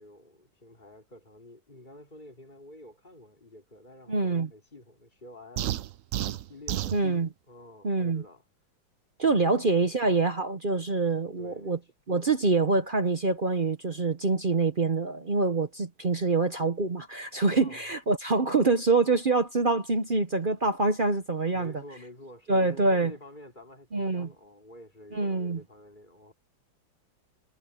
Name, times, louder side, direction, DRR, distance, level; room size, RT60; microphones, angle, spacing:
voice 1, 0.0-5.7 6.2-7.0 7.5-8.4 9.2-9.7 11.4-11.8 17.5-17.9 21.5-26.3, left 1 dB, 20° left, 3.5 m, -50 dB
voice 2, 4.1-4.5 6.9-7.3 7.8-8.2 9.2-11.8 12.1-21.7 22.5-23.1 23.9-24.3 25.1-25.6, right 3 dB, 40° right, 0.7 m, -25 dB
sound 1, 5.6-7.0, right 12 dB, 90° right, 0.7 m, -31 dB
omnidirectional pair, 2.1 m